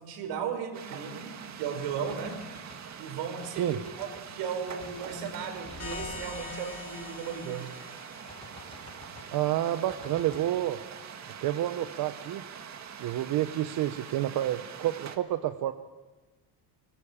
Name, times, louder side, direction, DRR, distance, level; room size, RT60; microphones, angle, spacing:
voice 1, 0.0-2.5 3.0-7.7, right 6 dB, 75° right, 5 dB, 5.4 m, -36 dB
sound 1, 0.7-15.2, right 7 dB, 40° right, 1.9 m, -44 dB
sound 2, 1.8-2.8 3.4-4.3 4.7-7.6 8.3-9.4 9.9-10.4, left 2 dB, 15° left, 5.9 m, -49 dB
sound 3, 5.8-9.2, left 4 dB, 35° left, 4.5 m, -45 dB
voice 2, 9.3-10.8 11.4-12.4 13.0-15.7, right 13 dB, 55° right, 9 dB, 1.0 m, -29 dB
25.0 x 19.5 x 8.8 m, 1.3 s
cardioid pair, 140°, 42 cm